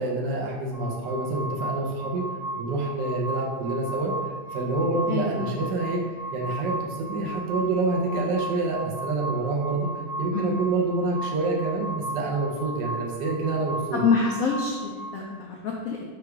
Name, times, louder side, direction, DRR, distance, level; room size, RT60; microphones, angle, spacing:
voice 1, 0.0-2.2 2.6-4.1 4.5-6.0 6.3-9.9 10.2-14.0, right 3 dB, 75° right, -1 dB, 1.3 m, -27 dB
sound 1, 0.7-15.2, right 1 dB, 55° right, 1.0 m, -36 dB
voice 2, 5.1-5.5 10.3-10.5 13.9-16.0, left 5 dB, 80° left, -1 dB, 0.7 m, -26 dB
4.8 x 2.3 x 4.6 m, 1.5 s
omnidirectional pair, 2.0 m